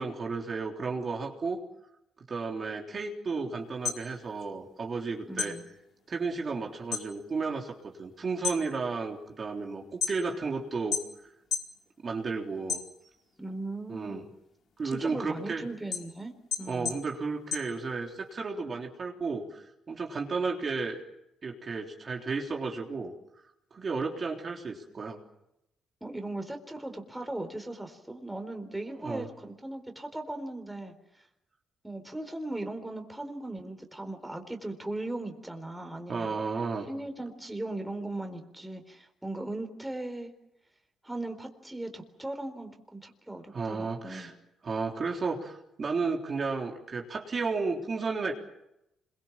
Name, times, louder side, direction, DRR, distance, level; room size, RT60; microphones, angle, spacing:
voice 1, 0.0-1.6 2.3-5.6 6.1-11.3 12.0-12.8 13.9-14.2 14.8-15.6 16.7-21.0 21.4-23.1 23.7-25.2 28.9-29.3 36.1-36.9 43.5-44.3 44.6-48.3, right 4 dB, 40° right, 1 dB, 3.6 m, -33 dB
sound 1, 3.6-5.0 5.3-7.1 7.5-7.9 8.3-10.5 10.9-11.8 12.1-13.3 13.8-18.3, left 7 dB, 65° left, 4.7 m, -35 dB
voice 2, 5.3-5.6 13.4-14.2 14.8-17.0 26.0-31.2 31.8-36.3 36.9-40.3 41.0-44.3, right 2 dB, 10° right, 5 dB, 4.0 m, -38 dB
26.5 x 23.0 x 7.4 m, 0.85 s
cardioid pair, 90°, 0 cm